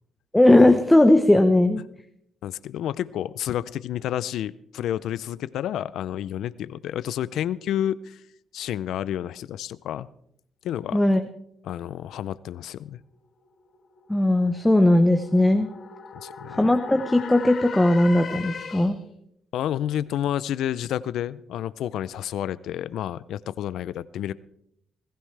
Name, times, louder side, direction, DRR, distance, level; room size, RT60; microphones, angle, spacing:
voice 1, 0.3-1.8 10.9-11.2 14.1-15.7 16.5-18.9, left 1 dB, 10° left, 7 dB, 0.8 m, -18 dB
voice 2, 2.4-8.2 8.5-10.1 10.6-11.0 11.6-13.0 16.1-16.7 19.5-24.3, left 11 dB, 80° left, 18 dB, 0.5 m, -30 dB
sound 1, 13.0-19.2, left 6 dB, 55° left, 1.4 m, -40 dB
20.5 x 14.5 x 3.3 m, 0.72 s
cardioid pair, 90°, 0 cm